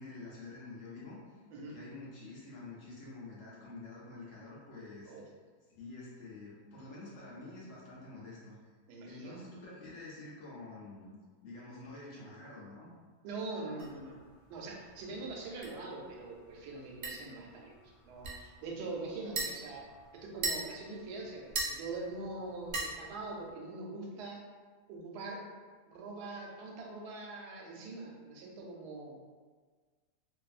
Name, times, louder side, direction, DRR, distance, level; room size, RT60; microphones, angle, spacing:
voice 1, 0.0-5.1 5.8-8.6 9.0-11.1 11.4-12.9, left 2 dB, 65° left, -6 dB, 0.9 m, -48 dB
voice 2, 8.9-9.4 13.2-14.2 14.5-17.7 18.0-19.9 20.1-24.4 24.9-25.5 25.9-29.2, right 3 dB, 90° right, -1 dB, 1.1 m, -43 dB
sound 1, 13.8-23.5, right 2 dB, 70° right, 0.6 m, -42 dB
2.6 x 2.4 x 2.4 m, 1.5 s
omnidirectional pair, 1.7 m